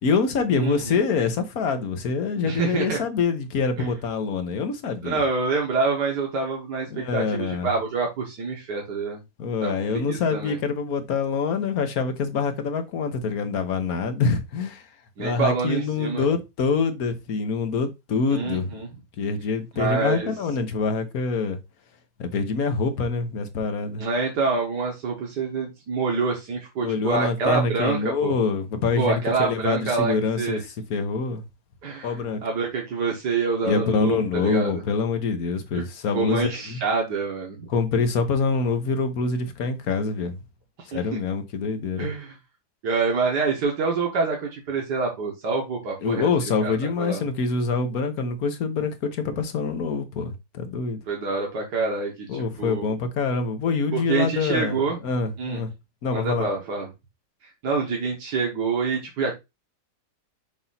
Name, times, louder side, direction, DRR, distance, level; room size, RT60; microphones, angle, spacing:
voice 1, 0.0-5.2 6.9-7.7 9.4-14.9 15.2-18.7 19.2-21.6 22.2-24.1 26.8-30.6 30.9-31.4 32.0-32.4 33.6-36.8 37.7-40.4 40.9-42.1 46.0-51.0 52.3-54.8 55.0-55.7 56.0-56.5, left 4 dB, 65° left, 1.6 m, -25 dB
voice 2, 0.6-1.0 2.4-3.0 3.8-3.9 5.0-9.2 9.6-10.6 15.2-16.3 18.3-18.9 19.8-20.3 24.0-28.4 29.0-30.6 31.8-32.2 32.4-34.2 34.4-34.8 35.7-35.8 36.1-37.7 40.9-41.0 42.0-42.4 42.8-46.3 46.6-47.2 51.1-52.9 53.9-55.0 55.4-55.6 56.1-56.9 57.6-59.3, right 4 dB, 90° right, 2.1 m, -26 dB
7.0 x 2.7 x 5.7 m
omnidirectional pair, 1.7 m